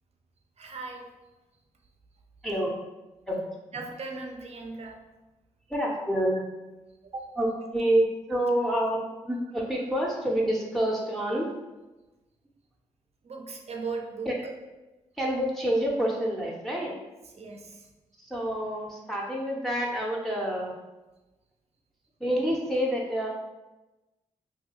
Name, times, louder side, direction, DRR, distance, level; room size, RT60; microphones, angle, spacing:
voice 1, 0.6-1.1 3.7-5.1 7.0-7.4 8.6-9.0 13.2-14.5 17.3-17.9, right 4 dB, 50° right, 3 dB, 0.5 m, -38 dB
voice 2, 5.7-6.4 7.4-7.5 7.7-11.5 14.3-14.4 15.2-17.0 18.3-20.7 22.2-23.3, right 1 dB, ahead, -3 dB, 0.6 m, -27 dB
2.6 x 2.3 x 2.9 m, 1.1 s
supercardioid pair, 40°, 14 cm